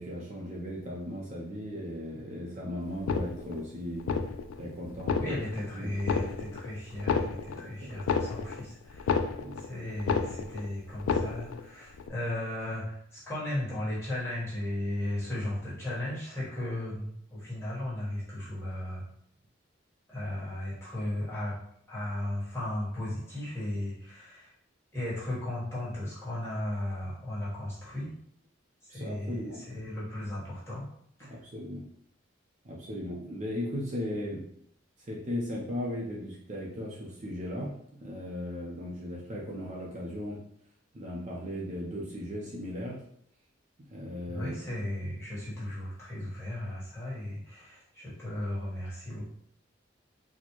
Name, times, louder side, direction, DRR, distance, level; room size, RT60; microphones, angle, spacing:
voice 1, 0.0-4.0 4.6-5.3 5.7-5.9 7.5-7.9 9.4-9.6 28.9-29.6 31.2-31.8 32.6-34.4 35.0-40.4 40.9-43.0 43.9-44.6, left 1 dB, 35° right, -4 dB, 0.5 m, -37 dB
sound 1, 2.9-3.7 4.0-4.6 4.9-5.7 6.0-6.7 6.9-9.7 10.0-10.7 10.9-11.7 12.0-12.1, left 5 dB, 90° left, 0.3 m, -30 dB
voice 2, 5.1-9.2 9.6-19.0 20.1-21.6 21.9-24.5 24.9-28.1 28.8-30.9 31.2-31.4 44.3-49.2, left 1 dB, 15° left, -8 dB, 1.4 m, -35 dB
4.2 x 2.1 x 3.0 m, 0.70 s
head